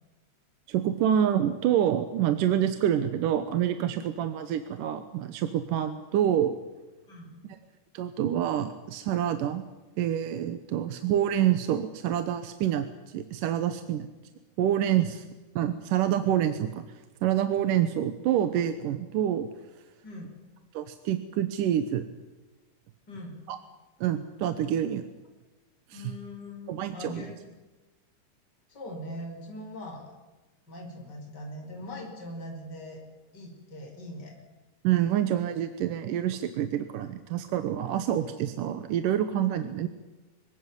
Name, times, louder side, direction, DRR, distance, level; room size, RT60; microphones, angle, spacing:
voice 1, 0.7-6.6 7.4-7.6 7.9-9.6 10.0-14.1 14.6-15.2 15.6-16.8 17.2-19.5 20.7-22.0 23.5-23.6 24.0-25.0 25.9-26.1 26.7-27.3 34.8-39.9, right 10 dB, 75° right, 9 dB, 2.6 m, -27 dB
voice 2, 7.1-7.4 17.7-17.8 20.0-20.4 23.1-23.3 25.9-27.5 28.7-30.1 30.7-33.0 33.3-34.3, left 1 dB, 30° left, 1 dB, 5.9 m, -41 dB
25.0 x 17.5 x 9.8 m, 1.2 s
omnidirectional pair, 3.8 m